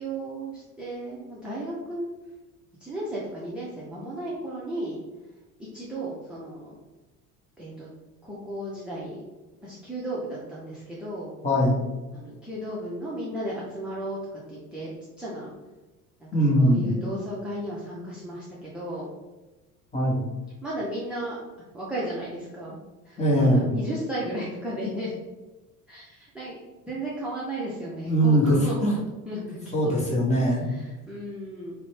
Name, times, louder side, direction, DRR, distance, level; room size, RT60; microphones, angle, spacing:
voice 1, 0.0-2.1 2.8-5.0 5.7-6.7 7.6-7.9 8.2-9.2 9.6-11.3 12.1-14.2 14.5-15.5 16.2-19.1 20.6-21.4 21.7-22.8 23.0-25.1 25.9-26.6 26.9-29.0 29.3-30.0 30.7-31.7, right 1 dB, ahead, -7 dB, 0.5 m, -34 dB
voice 2, 11.4-11.8 16.3-16.9 19.9-20.2 23.2-23.7 28.0-28.9 29.7-30.7, equal, 15° left, -4 dB, 0.9 m, -21 dB
2.5 x 2.1 x 3.1 m, 1.1 s
figure-of-eight pair, 65°, 45 cm